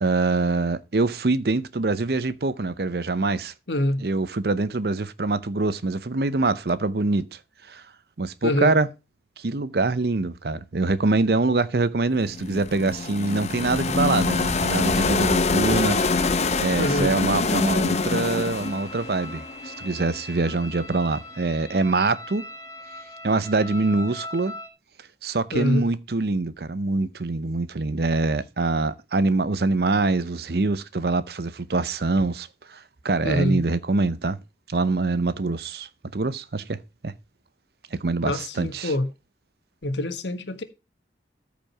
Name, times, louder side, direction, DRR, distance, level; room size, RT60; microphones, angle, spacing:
voice 1, 0.0-3.5 4.0-7.3 7.7-7.8 8.2-8.9 9.4-16.3 16.6-22.5 23.2-24.6 25.2-34.4 34.7-36.8 37.0-37.1 37.9-38.9, right 3 dB, 60° right, 0.7 m, -24 dB
voice 2, 3.7-4.0 8.4-8.7 16.7-17.2 25.5-25.9 33.2-33.6 38.2-39.1 39.8-40.6, left 1 dB, 85° left, 1.5 m, -25 dB
sound 1, 12.3-20.3, left 3 dB, 40° left, 0.7 m, -25 dB
sound 2, 17.7-24.7, left 1 dB, 20° left, 1.4 m, -40 dB
13.5 x 5.2 x 4.6 m
head